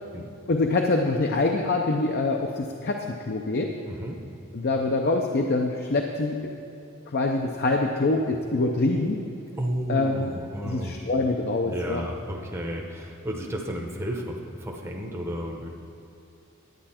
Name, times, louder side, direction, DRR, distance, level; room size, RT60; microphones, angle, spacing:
voice 1, 0.5-3.7 4.5-6.4 7.1-9.2 9.9-10.3 10.6-12.0, left 2 dB, 50° left, 2 dB, 0.6 m, -25 dB
voice 2, 3.8-4.2 9.5-11.0 11.7-15.7, right 1 dB, 10° right, 0 dB, 0.8 m, -32 dB
10.5 x 8.8 x 4.3 m, 2.8 s
head